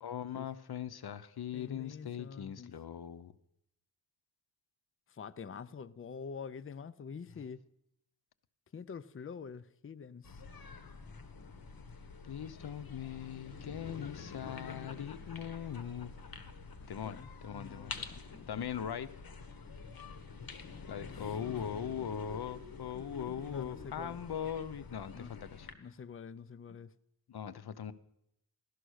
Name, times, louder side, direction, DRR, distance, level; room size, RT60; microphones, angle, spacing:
voice 1, 0.0-3.3 12.2-16.1 16.9-17.2 17.4-18.0 18.5-19.1 20.9-25.7 27.3-27.9, left 8 dB, 85° left, 0.8 m, -40 dB
voice 2, 1.5-2.7 5.1-7.6 8.7-10.4 14.5-14.9 17.0-18.7 21.1-21.4 23.4-24.2 25.0-25.3 25.8-26.9, left 6 dB, 35° left, 0.5 m, -47 dB
sound 1, 10.2-25.7, left 4 dB, 70° left, 1.4 m, -48 dB
17.0 x 12.5 x 6.4 m
wide cardioid pair, 100°, 37 cm